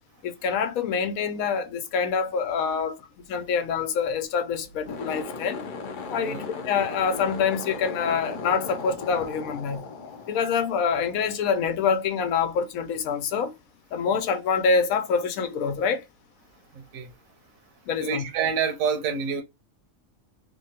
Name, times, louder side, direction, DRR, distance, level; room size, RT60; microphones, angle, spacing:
voice 1, 0.2-3.0 3.3-5.6 6.1-9.8 10.3-13.5 13.9-16.0 17.9-18.2, left 6 dB, 90° left, 1.1 m, -26 dB
sound 1, 4.7-11.3, left 4 dB, 65° left, 0.5 m, -37 dB
voice 2, 16.7-17.1 18.0-19.4, right 6 dB, 80° right, 1.0 m, -27 dB
3.0 x 2.2 x 2.7 m
omnidirectional pair, 1.4 m